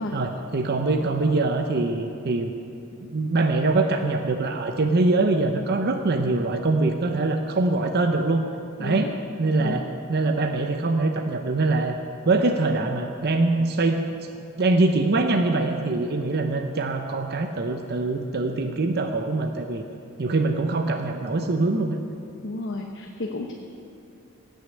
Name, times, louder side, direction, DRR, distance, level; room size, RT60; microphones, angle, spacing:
voice 1, 0.0-2.5 3.0-8.4 8.8-9.1 9.4-9.8 10.1-12.0 12.3-14.0 14.6-19.8 20.2-22.0, right 2 dB, 50° right, 4 dB, 0.7 m, -23 dB
voice 2, 8.8-9.1 9.6-9.9 22.4-23.5, left 2 dB, 55° left, 2 dB, 0.9 m, -32 dB
17.5 x 6.5 x 8.4 m, 2.5 s
head